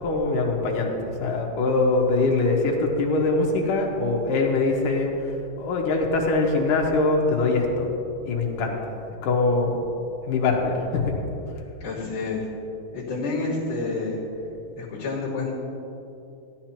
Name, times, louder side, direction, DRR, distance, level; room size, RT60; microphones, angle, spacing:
voice 1, 0.0-5.1 5.6-7.9 8.3-8.9 9.2-9.8 10.3-11.1, left 3 dB, 65° left, 0 dB, 2.5 m, -23 dB
voice 2, 11.8-12.4 12.9-14.2 14.8-15.5, left 3 dB, 30° left, -12 dB, 2.9 m, -29 dB
16.0 x 11.0 x 2.9 m, 2.9 s
omnidirectional pair, 4.4 m